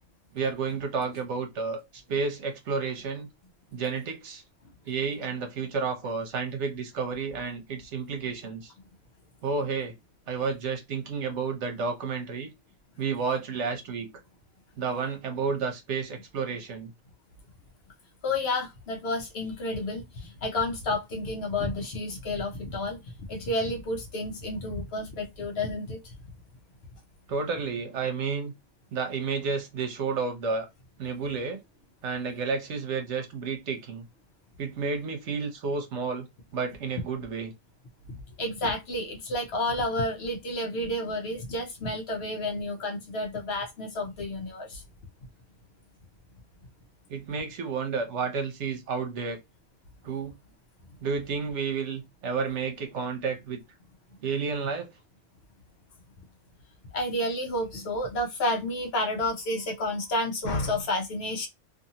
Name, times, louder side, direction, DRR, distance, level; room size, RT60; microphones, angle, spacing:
voice 1, 0.3-1.8 2.1-3.3 3.7-4.4 4.9-8.7 9.4-9.9 10.3-12.5 13.0-14.1 14.8-16.9 27.3-28.5 28.9-30.7 31.0-31.6 32.0-34.1 34.6-36.3 36.5-37.5 47.1-49.4 50.0-50.3 51.0-53.6 54.2-54.9, right 5 dB, 70° right, 1.0 m, -31 dB
voice 2, 18.2-23.0 23.3-26.0 38.4-44.8 56.9-61.5, left 1 dB, 60° left, 0.9 m, -30 dB
2.6 x 2.6 x 2.8 m
omnidirectional pair, 1.3 m